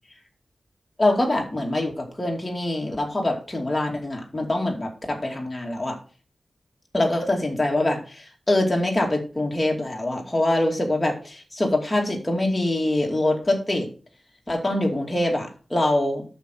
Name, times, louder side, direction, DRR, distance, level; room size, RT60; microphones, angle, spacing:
voice 1, 1.0-6.0 6.9-13.9 14.5-16.2, left 1 dB, 15° left, 0 dB, 2.6 m, -24 dB
9.0 x 6.5 x 4.6 m, 0.37 s
wide cardioid pair, 115°, 0 cm